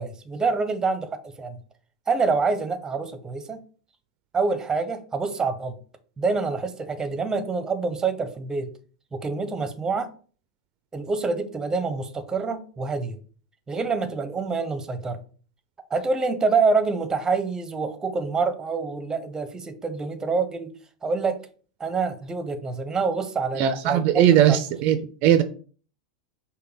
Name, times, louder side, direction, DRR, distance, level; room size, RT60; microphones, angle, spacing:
voice 1, 0.0-1.6 2.1-3.6 4.3-5.8 6.2-8.7 9.1-10.1 10.9-13.2 13.7-15.2 15.9-20.7 21.0-21.4 21.8-24.6, right 4 dB, 15° right, 10 dB, 0.7 m, -26 dB
voice 2, 23.6-25.4, right 10 dB, 50° right, 10 dB, 0.4 m, -19 dB
5.3 x 2.2 x 3.7 m, 0.40 s
hypercardioid pair, 95°, 4 cm